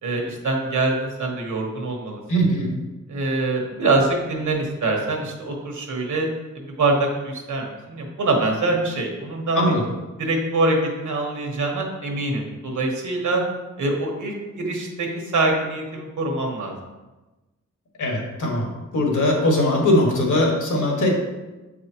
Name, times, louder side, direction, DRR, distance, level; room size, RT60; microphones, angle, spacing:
voice 1, 0.0-2.4 3.1-6.3 6.5-9.7 10.2-13.4 13.8-15.1 15.3-16.8, right 2 dB, 80° right, 1 dB, 1.2 m, -24 dB
voice 2, 2.3-2.7 9.5-9.8 18.0-18.6 18.9-21.2, left 1 dB, 85° left, -1 dB, 1.6 m, -20 dB
7.6 x 4.8 x 2.9 m, 1.1 s
wide cardioid pair, 165°, 30 cm